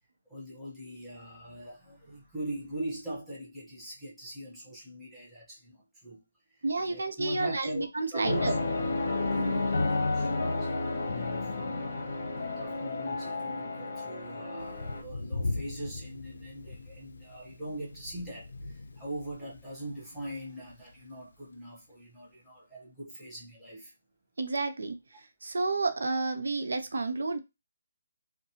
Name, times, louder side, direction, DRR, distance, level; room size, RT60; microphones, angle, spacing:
voice 1, 0.3-6.2 6.5-8.6 9.0-11.9 12.4-23.9, right 1 dB, 5° right, 0.7 m, -41 dB
voice 2, 6.6-8.5 24.4-24.9 25.4-27.4, right 3 dB, 80° right, 0.6 m, -30 dB
sound 1, 8.2-15.0, left 3 dB, 50° left, 0.9 m, -31 dB
Thunder, 14.6-21.4, left 2 dB, 75° left, 0.5 m, -40 dB
2.8 x 2.2 x 2.7 m
hypercardioid pair, 175°, 0 cm